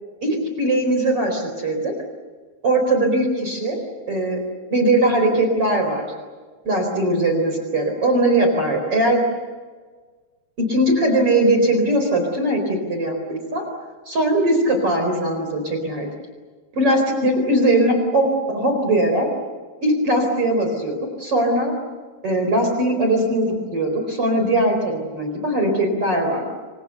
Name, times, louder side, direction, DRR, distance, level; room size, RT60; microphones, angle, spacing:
voice 1, 0.2-1.9 2.6-3.8 4.1-4.4 4.7-6.1 6.6-9.2 10.6-13.7 14.1-16.1 16.7-19.3 19.8-21.7 22.2-26.6, right 1 dB, 30° right, 4 dB, 4.8 m, -20 dB
28.5 x 25.0 x 6.8 m, 1.4 s
omnidirectional pair, 5.2 m